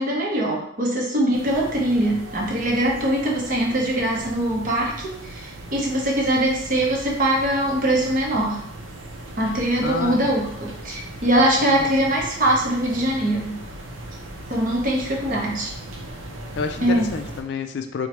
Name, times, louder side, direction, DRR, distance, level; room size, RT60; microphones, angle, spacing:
voice 1, 0.0-8.6 9.4-13.6 14.5-15.7 16.8-17.1, right 1 dB, 40° right, -2 dB, 0.7 m, -22 dB
sound 1, 1.3-17.4, right 1 dB, 85° right, 0.6 m, -38 dB
voice 2, 9.8-10.2 11.6-11.9 16.6-18.1, left 5 dB, 60° left, 7 dB, 0.3 m, -29 dB
4.5 x 2.1 x 2.8 m, 0.70 s
head